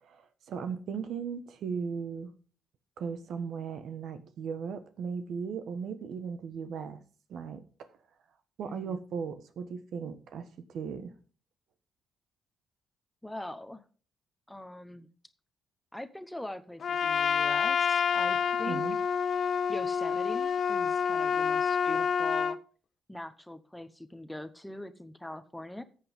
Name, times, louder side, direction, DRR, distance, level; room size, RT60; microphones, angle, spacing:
voice 1, 0.0-2.3 3.0-7.0 7.3-7.6 8.6-11.1 18.7-19.0, right 6 dB, 70° right, 10 dB, 1.3 m, -37 dB
voice 2, 8.6-9.0 13.2-13.8 14.5-15.1 15.9-18.8 19.7-22.6 23.1-25.8, left 1 dB, 5° left, 10 dB, 0.9 m, -42 dB
Trumpet, 16.8-22.6, left 7 dB, 55° left, 0.6 m, -28 dB
14.0 x 7.8 x 3.6 m, 0.40 s
cardioid pair, 90°, 0 cm